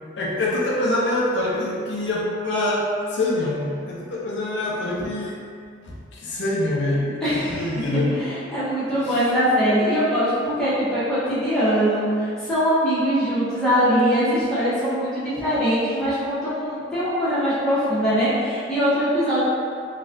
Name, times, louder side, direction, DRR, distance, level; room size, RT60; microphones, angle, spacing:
voice 1, 0.2-5.4 5.9-8.2 8.8-9.2, left 1 dB, 65° left, -6 dB, 0.5 m, -25 dB
voice 2, 7.2-7.7 8.1-19.4, equal, 5° left, -14 dB, 1.1 m, -22 dB
3.9 x 2.3 x 2.6 m, 2.3 s
head